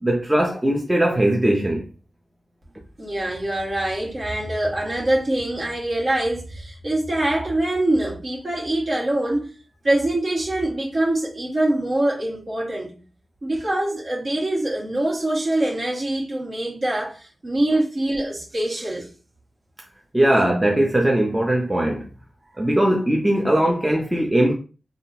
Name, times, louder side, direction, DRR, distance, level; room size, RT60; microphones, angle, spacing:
voice 1, 0.0-1.8 20.1-22.0 22.6-24.5, right 1 dB, 10° right, 0.5 m, -20 dB
voice 2, 3.0-9.5 9.8-13.0 13.4-19.1, right 1 dB, 50° right, 1.3 m, -24 dB
3.5 x 2.4 x 2.7 m
wide cardioid pair, 90°, 0 cm